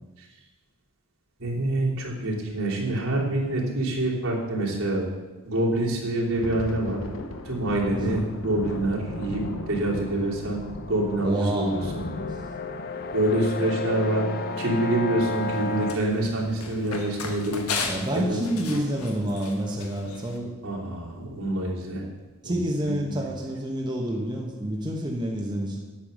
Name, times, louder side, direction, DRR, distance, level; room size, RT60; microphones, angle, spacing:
voice 1, 1.4-5.0 5.4-7.0 7.4-12.0 13.1-14.2 14.6-17.6 18.1-18.4 20.6-22.0 22.4-22.5 22.8-23.2, right 1 dB, 75° right, -4 dB, 3.1 m, -26 dB
Thunder, 6.2-15.2 15.6-15.8 16.2-16.4 17.0-17.5, left 2 dB, 65° left, 0.9 m, -37 dB
voice 2, 7.9-8.2 11.2-11.8 17.8-20.5 20.8-20.9 22.4-25.8, right 1 dB, 20° right, -1 dB, 1.1 m, -28 dB
sound 1, 10.0-16.0, left 3 dB, 45° left, 0.6 m, -33 dB
Run, 15.2-20.4, left 4 dB, 85° left, 1.5 m, -36 dB
9.9 x 8.7 x 6.5 m, 1.2 s
head